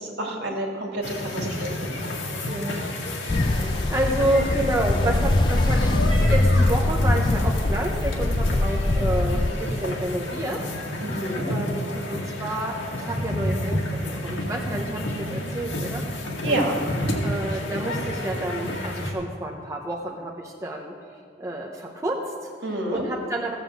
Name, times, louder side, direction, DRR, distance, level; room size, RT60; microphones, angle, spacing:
voice 1, 0.0-1.9 11.0-11.4 16.4-16.8 22.6-23.0, right 1 dB, 60° right, -1 dB, 2.4 m, -28 dB
sound 1, 1.0-19.1, left 1 dB, 80° left, 2.0 m, -30 dB
voice 2, 2.5-2.8 3.2-10.6 11.0-13.8 14.2-16.0 16.4-16.7 17.2-20.9 21.4-23.5, right 1 dB, 15° right, -1 dB, 0.9 m, -29 dB
Ocean, 3.3-9.5, left 2 dB, 25° left, 0.4 m, -22 dB
15.5 x 7.1 x 7.4 m, 2.2 s
head